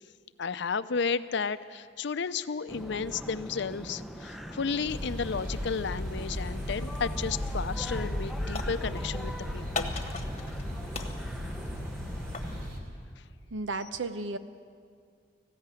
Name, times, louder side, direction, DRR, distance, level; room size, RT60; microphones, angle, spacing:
voice 1, 0.4-9.9, left 5 dB, 65° left, 13 dB, 0.6 m, -33 dB
sound 1, 2.7-12.7, equal, ahead, 0.7 m, -43 dB
sound 2, 4.9-12.8, equal, 55° right, 3.2 m, -35 dB
sound 3, 7.4-7.7 8.0-9.2 9.8-10.6 10.9-12.6, left 4 dB, 35° left, 1.3 m, -39 dB
voice 2, 13.5-14.4, right 3 dB, 85° right, 11 dB, 0.9 m, -33 dB
19.5 x 15.0 x 9.1 m, 2.2 s
head